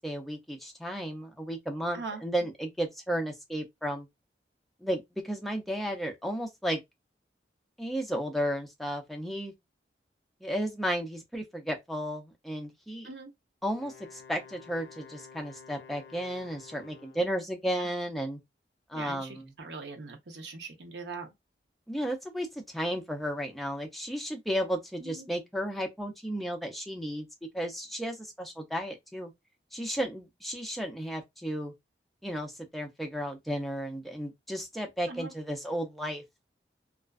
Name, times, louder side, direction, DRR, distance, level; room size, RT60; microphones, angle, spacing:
voice 1, 0.0-4.1 4.8-6.8 7.8-9.5 10.4-13.1 13.6-18.4 18.9-19.5 21.9-27.3 27.5-29.3 29.7-31.7 32.2-36.2, equal, ahead, 0.4 m, -33 dB
Wind instrument woodwind instrument, 13.7-17.4, left 6 dB, 85° left, 0.4 m, -51 dB
voice 2, 18.9-21.3 25.0-25.3 35.1-35.3, right 4 dB, 80° right, 0.7 m, -41 dB
2.4 x 2.2 x 2.3 m
head